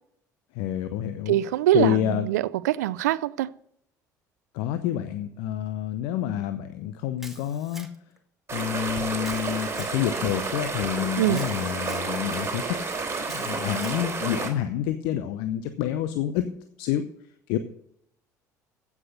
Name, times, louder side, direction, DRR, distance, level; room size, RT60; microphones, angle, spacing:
voice 1, 0.5-1.4 1.7-2.3 4.5-7.9 8.5-12.8 13.3-16.5 16.8-17.0 17.5-17.6, left 11 dB, 60° left, 0.8 m, -28 dB
voice 2, 1.3-3.5 11.2-11.5, right 13 dB, 70° right, 0.5 m, -23 dB
Camera, 7.2-8.2 9.2-10.0 11.3-12.1 13.2-14.0, right 1 dB, 5° right, 2.1 m, -45 dB
sound 1, 8.5-14.5, right 4 dB, 25° right, 3.2 m, -30 dB
15.5 x 6.0 x 6.6 m
figure-of-eight pair, 60°, 9 cm